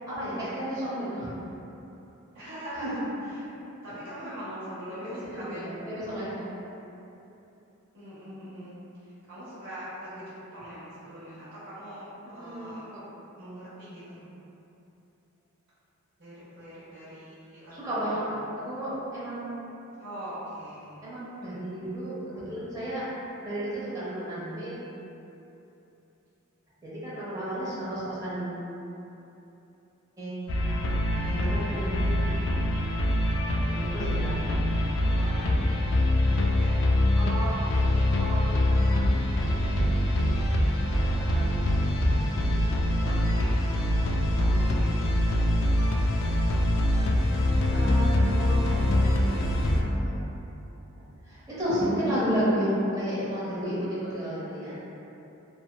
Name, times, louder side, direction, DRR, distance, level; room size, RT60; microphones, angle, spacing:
voice 1, 0.1-1.3 2.8-3.0 5.0-6.5 12.4-12.7 17.7-19.6 21.0-23.1 23.4-24.8 26.8-28.7 30.2-30.4 31.2-32.2 33.7-34.5 35.3-35.5 42.3-42.5 43.9-44.5 47.7-50.2 51.3-54.8, equal, 15° right, -11 dB, 0.9 m, -32 dB
voice 2, 2.3-3.5 3.8-6.0 7.9-12.9 13.4-14.3 16.2-18.1 20.0-21.0 35.1-41.7 42.9-45.0, right 1 dB, 55° right, -14 dB, 0.7 m, -41 dB
sound 1, 30.5-49.8, left 1 dB, 60° left, 0.3 m, -24 dB
3.2 x 2.1 x 2.3 m, 2.9 s
head